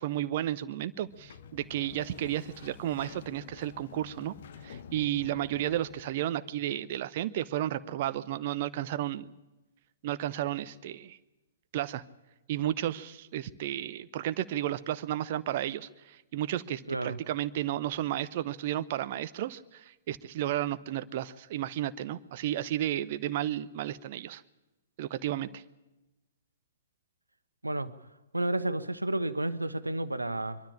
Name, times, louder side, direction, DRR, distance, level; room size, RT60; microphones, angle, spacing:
voice 1, 0.0-4.3 4.6-9.3 10.0-11.2 11.7-12.0 12.5-24.4 25.0-25.6, right 12 dB, 40° right, 13 dB, 0.8 m, -33 dB
Sliding door, 0.9-6.2, left 7 dB, 50° left, 1.1 m, -49 dB
voice 2, 16.9-17.2 27.6-27.9 28.3-30.6, right 1 dB, 80° right, 12 dB, 1.2 m, -31 dB
23.0 x 13.0 x 9.9 m, 1.0 s
figure-of-eight pair, 115°, 0 cm